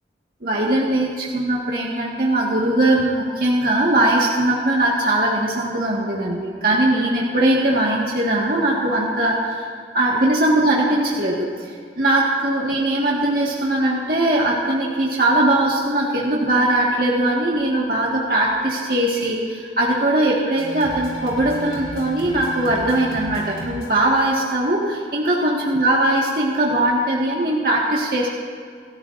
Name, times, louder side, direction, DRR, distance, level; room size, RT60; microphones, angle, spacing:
voice 1, 0.4-9.6 9.9-28.3, right 1 dB, 55° right, -4 dB, 1.7 m, -20 dB
sound 1, 20.6-25.0, right 1 dB, 65° left, 3.7 m, -35 dB
27.0 x 14.0 x 2.6 m, 2.1 s
head